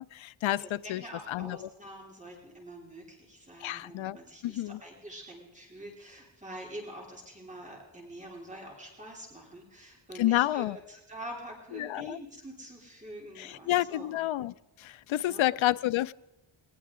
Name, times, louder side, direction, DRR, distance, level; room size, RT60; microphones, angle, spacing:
voice 1, 0.0-1.0 1.3-1.7 3.6-4.2 4.4-4.8 10.1-10.8 11.7-12.2 13.4-16.1, left 14 dB, 80° left, 16 dB, 0.6 m, -30 dB
voice 2, 0.6-14.1 15.2-15.5, right 1 dB, 15° right, -1 dB, 3.1 m, -46 dB
19.5 x 19.5 x 3.7 m, 1.0 s
wide cardioid pair, 150°, 47 cm